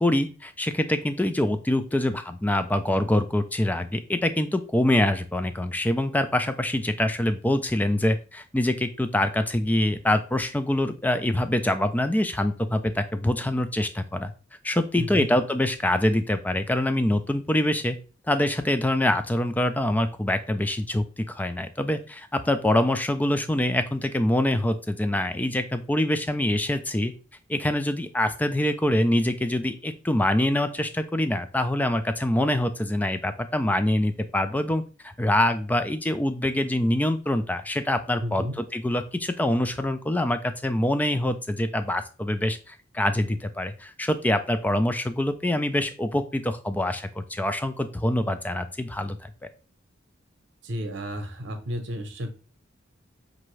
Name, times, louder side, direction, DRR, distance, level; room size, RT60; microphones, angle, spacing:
voice 1, 0.0-14.3 14.6-18.0 18.3-27.1 27.5-49.3, left 1 dB, 10° left, 9 dB, 0.3 m, -25 dB
voice 2, 15.0-15.3 38.2-38.6 50.6-52.4, equal, 60° right, 7 dB, 0.8 m, -32 dB
5.5 x 2.6 x 3.1 m, 0.35 s
head